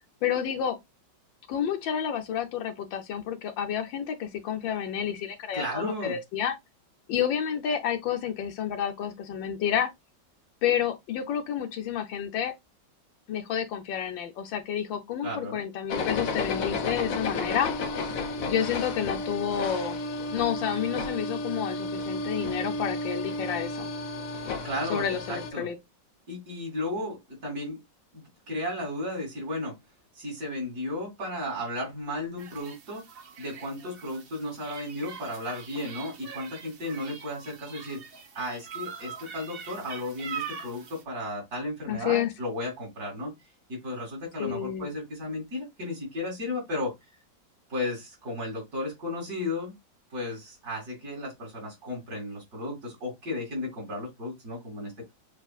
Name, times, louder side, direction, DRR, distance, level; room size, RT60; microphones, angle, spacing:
voice 1, 0.2-0.8 1.5-6.6 7.1-9.9 10.6-12.5 13.3-17.7 18.5-20.0 20.3-23.9 24.9-25.8 27.0-27.1 41.9-42.3 44.4-44.9, left 9 dB, 90° left, 1.5 m, -30 dB
voice 2, 5.5-6.2 15.2-15.6 24.6-25.7 26.3-27.8 28.1-29.8 30.2-33.1 33.4-38.0 38.3-43.3 43.7-46.9 47.7-49.7 50.1-55.1, left 1 dB, 55° right, 2.9 m, -34 dB
sound 1, 15.9-25.5, left 2 dB, 60° left, 1.0 m, -32 dB
sound 2, 32.4-41.0, right 7 dB, 70° right, 0.5 m, -43 dB
6.6 x 2.5 x 2.4 m
omnidirectional pair, 2.0 m